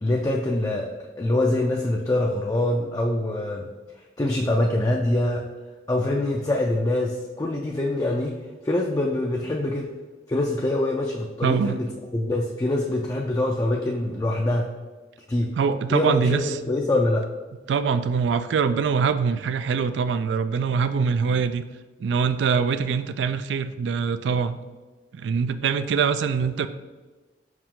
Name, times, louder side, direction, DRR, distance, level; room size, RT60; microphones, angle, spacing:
voice 1, 0.0-3.7 4.2-5.5 5.9-8.4 8.6-9.9 10.3-11.9 12.1-14.7 15.3-15.5 15.9-17.2, left 1 dB, 20° left, 0 dB, 0.4 m, -24 dB
voice 2, 11.4-11.8 15.6-16.5 17.7-21.6 22.0-24.6 25.1-26.7, right 6 dB, 85° right, 12 dB, 0.3 m, -23 dB
5.4 x 4.7 x 3.7 m, 1.3 s
head